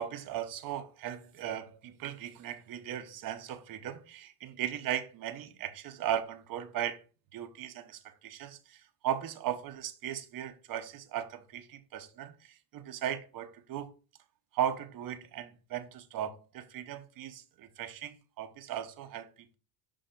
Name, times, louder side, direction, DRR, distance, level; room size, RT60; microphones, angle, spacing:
voice 1, 0.0-7.0 7.3-13.9 14.5-19.5, right 10 dB, 45° right, 0.9 m, -37 dB
5.5 x 3.8 x 5.2 m
supercardioid pair, 115°, 47 cm